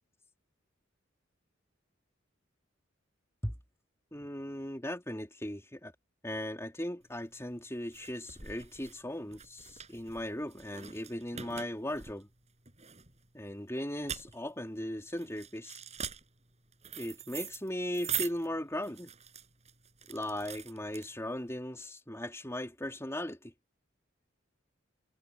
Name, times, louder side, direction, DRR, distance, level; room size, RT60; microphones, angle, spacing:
voice 1, 4.1-5.9 6.2-12.3 13.3-15.8 17.0-19.1 20.1-23.5, left 1 dB, 15° left, 3.9 m, -38 dB
sound 1, 7.1-21.5, right 8 dB, 35° right, 7.7 m, -43 dB
head